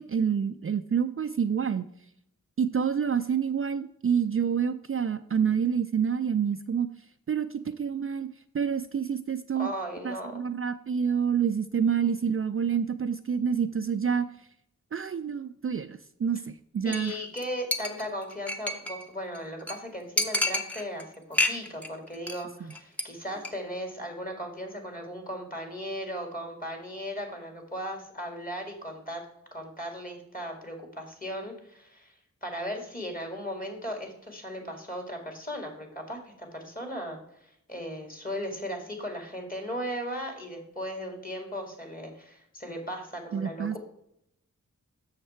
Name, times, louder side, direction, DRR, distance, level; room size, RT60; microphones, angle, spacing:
voice 1, 0.0-1.9 2.6-6.9 7.3-8.3 8.5-9.7 10.0-14.5 14.9-17.2 43.3-43.8, right 7 dB, 45° right, 9 dB, 0.4 m, -28 dB
voice 2, 9.5-10.4 16.8-29.2 29.5-32.1 32.4-43.8, equal, 25° left, 2 dB, 2.4 m, -37 dB
Chink clink, 16.9-17.1 17.4-17.5 17.7-19.0 19.4-19.5 19.7-19.8 20.2-21.0 21.3-21.9 22.1-22.4 22.7-23.0 23.4-23.5, left 2 dB, 5° left, 1.0 m, -29 dB
7.3 x 6.5 x 4.4 m, 0.75 s
wide cardioid pair, 55°, 31 cm